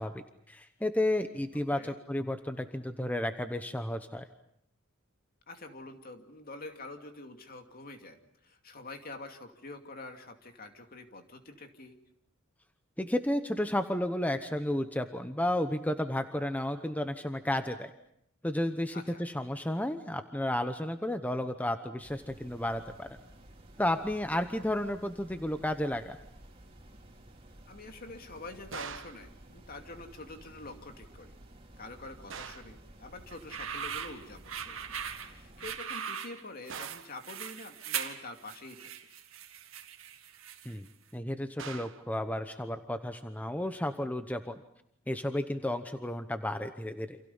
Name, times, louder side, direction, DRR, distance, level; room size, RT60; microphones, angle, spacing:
voice 1, 0.0-4.2 13.0-17.9 18.4-23.2 23.8-26.2 40.6-40.9 41.1-44.6 45.1-47.2, left 1 dB, 10° left, 8 dB, 0.9 m, -32 dB
voice 2, 5.5-12.0 18.9-19.2 27.7-31.3 31.8-34.8 35.2-38.9, left 2 dB, 45° left, 5 dB, 2.6 m, -46 dB
sound 1, 22.0-35.8, right 1 dB, 30° right, 3.9 m, -54 dB
sound 2, 28.7-29.3 32.3-32.8 36.7-37.2 41.6-42.1, right 6 dB, 65° right, 1.3 m, -43 dB
sound 3, 33.3-40.9, right 8 dB, 80° right, 2.2 m, -40 dB
29.0 x 27.5 x 5.6 m, 0.71 s
head